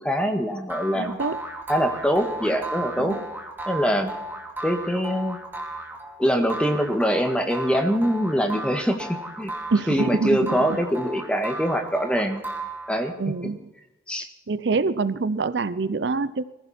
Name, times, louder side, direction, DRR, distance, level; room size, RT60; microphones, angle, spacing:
voice 1, 0.0-1.2 1.7-3.2 3.7-4.1 4.6-5.4 6.2-9.5 9.9-12.4 12.9-13.1 13.4-13.5 14.1-14.3, equal, 5° left, 5 dB, 1.7 m, -23 dB
sound 1, 0.7-13.2, right 2 dB, 10° right, 2.3 m, -35 dB
voice 2, 0.9-1.4 3.0-3.2 9.7-10.6 13.2-13.6 14.5-16.4, right 4 dB, 70° right, 16 dB, 0.6 m, -25 dB
21.5 x 15.0 x 4.4 m, 0.94 s
head